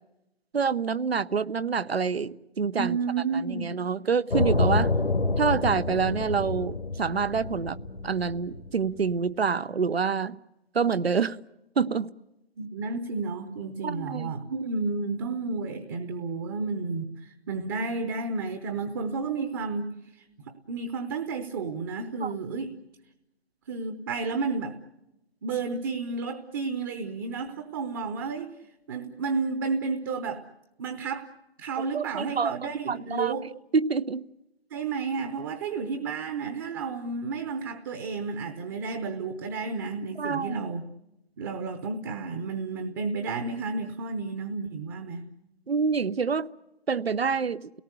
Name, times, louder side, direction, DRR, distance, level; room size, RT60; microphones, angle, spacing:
voice 1, 0.5-3.0 3.3-4.9 5.4-7.8 8.0-10.4 10.7-11.4 11.8-12.1 13.8-14.3 22.2-22.3 31.9-33.4 33.7-34.2 40.2-40.6 45.7-46.5 46.9-47.7, right 5 dB, 75° right, 0.8 m, -27 dB
voice 2, 2.8-3.7 12.6-20.3 20.7-22.7 23.7-24.8 25.4-28.5 28.9-30.4 30.8-31.3 31.6-33.5 34.7-40.8 41.4-45.2, right 4 dB, 20° right, 0.9 m, -31 dB
sound 1, 4.3-9.1, left 3 dB, 80° left, 2.0 m, -28 dB
29.5 x 18.0 x 8.1 m
figure-of-eight pair, 145°, 31 cm